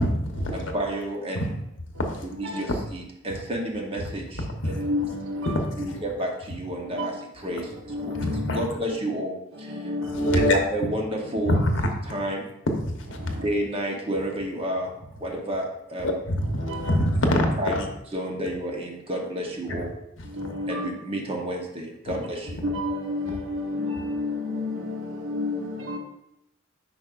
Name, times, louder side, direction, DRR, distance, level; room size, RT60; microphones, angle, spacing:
voice 1, 0.0-0.7 1.3-1.5 1.9-2.3 4.6-4.8 5.5-6.0 8.1-8.6 10.1-10.6 11.4-11.9 12.8-13.4 16.0-17.9 20.2-20.5 22.0-22.1, equal, 65° left, 3 dB, 1.0 m, -25 dB
voice 2, 0.5-1.5 2.2-4.8 5.8-7.1 7.4-7.6 8.0-8.2 8.5-9.3 10.5-11.6 12.1-12.4 13.4-14.9 15.2-16.2 17.6-17.9 18.1-20.0 20.7-22.6, right 1 dB, 30° right, 0 dB, 1.0 m, -30 dB
voice 3, 2.0-2.7 3.3-3.4 4.7-6.0 6.8-8.7 9.5-10.5 11.2-11.6 13.2-13.6 15.3-15.4 16.4-17.0 18.5-18.6 20.2-20.9 22.1-26.0, left 2 dB, 75° right, 1 dB, 1.1 m, -32 dB
8.5 x 5.3 x 2.5 m, 0.81 s
head